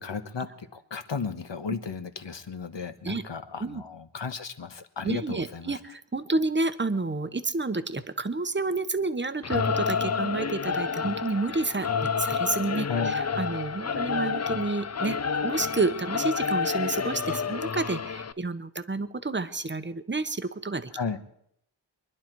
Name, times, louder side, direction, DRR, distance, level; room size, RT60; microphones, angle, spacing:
voice 1, 0.0-5.8 12.8-13.2 20.9-21.2, left 5 dB, 65° left, 9 dB, 1.2 m, -34 dB
voice 2, 5.0-20.9, right 3 dB, 25° right, 11 dB, 0.9 m, -30 dB
Singing / Musical instrument, 9.4-18.3, left 6 dB, 35° left, 0.5 m, -29 dB
24.0 x 11.0 x 4.6 m, 0.70 s
wide cardioid pair, 65°, 47 cm